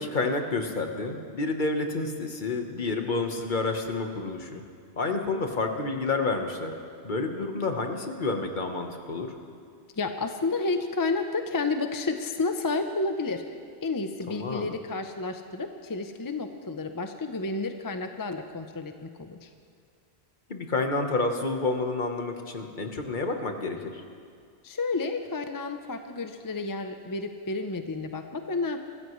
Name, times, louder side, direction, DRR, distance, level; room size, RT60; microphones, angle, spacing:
voice 1, 0.0-4.6 5.0-6.7 7.0-9.4 14.3-14.7 20.5-24.0, left 3 dB, 45° left, 4 dB, 1.2 m, -29 dB
voice 2, 10.0-19.5 24.6-28.8, left 3 dB, 25° left, 7 dB, 0.5 m, -31 dB
24.0 x 15.0 x 3.1 m, 2.2 s
omnidirectional pair, 1.1 m